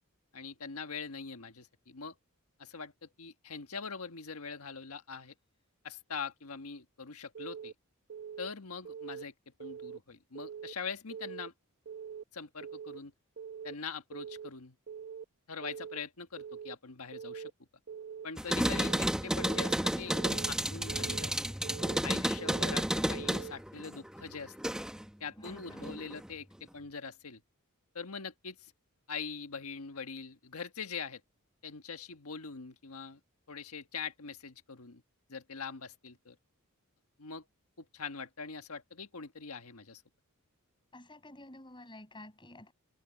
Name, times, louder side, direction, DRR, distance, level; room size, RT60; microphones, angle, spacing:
voice 1, 0.3-2.1 2.6-5.3 5.8-7.7 8.4-9.3 9.6-11.5 12.3-13.1 13.6-14.7 15.5-17.5 18.2-21.4 22.0-24.5 25.2-27.4 27.9-28.7 29.1-31.2 31.6-33.2 33.5-35.0 35.3-36.4 37.2-37.4 37.8-40.0, left 5 dB, 75° left, 1.5 m, -43 dB
Keyboard (musical) / Alarm, 7.3-7.7 8.1-8.5 8.8-9.2 9.6-10.0 10.3-10.7 11.1-11.5 11.9-12.2 12.6-13.0 13.4-13.7 14.1-14.5 14.9-15.2 15.6-16.0 16.4-16.7 17.1-17.5 17.9-18.2 18.6-19.0 19.4-19.8 20.1-20.5 20.9-21.3 21.6-22.0 22.4-22.8 23.1-23.5, right 7 dB, 55° right, 0.8 m, -43 dB
sound 1, 18.4-25.1 25.4-26.3, equal, 5° right, 1.0 m, -32 dB
voice 2, 25.4-25.9 40.9-42.7, left 1 dB, 20° left, 7.9 m, -50 dB
head